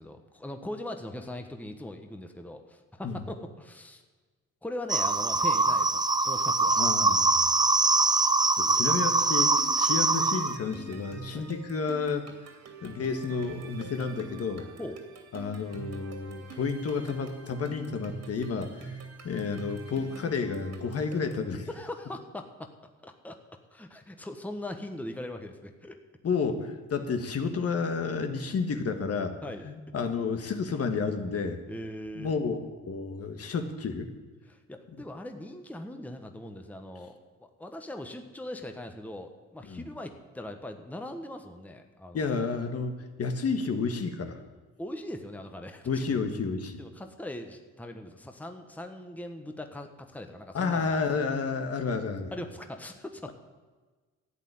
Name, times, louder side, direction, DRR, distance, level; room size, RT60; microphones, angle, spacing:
voice 1, 0.0-4.0 4.6-6.8 11.3-11.5 14.8-15.0 21.7-22.7 23.0-23.4 23.7-26.0 29.4-29.6 31.7-32.3 34.5-42.3 44.8-46.0 46.8-51.0 52.3-53.3, left 1 dB, 5° left, 5 dB, 1.2 m, -40 dB
sound 1, 4.9-10.6, right 3 dB, 15° right, 0.6 m, -23 dB
voice 2, 6.8-7.5 8.6-12.3 12.8-14.7 15.3-19.0 19.2-21.7 26.2-29.3 29.6-31.6 32.2-34.1 39.6-39.9 42.1-44.4 45.8-46.8 50.5-52.3, left 5 dB, 50° left, 6 dB, 1.5 m, -31 dB
sound 2, 9.2-21.5, right 3 dB, 60° right, 2.7 m, -45 dB
12.0 x 8.3 x 9.3 m, 1.3 s
cardioid pair, 90°, 30 cm